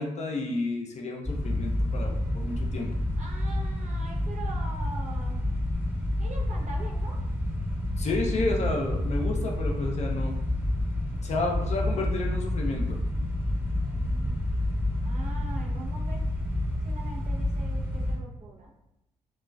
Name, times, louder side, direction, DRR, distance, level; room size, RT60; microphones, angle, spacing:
voice 1, 0.0-2.9 8.0-10.3 11.1-13.0, left 2 dB, 40° left, 1 dB, 0.6 m, -31 dB
sound 1, 1.2-18.2, left 1 dB, 10° right, 0.9 m, -29 dB
voice 2, 3.2-5.4 6.2-7.2 13.9-14.4 15.0-16.2 16.8-18.7, right 2 dB, 45° right, 0 dB, 0.6 m, -43 dB
3.0 x 2.3 x 2.3 m, 0.86 s
hypercardioid pair, 40°, 17 cm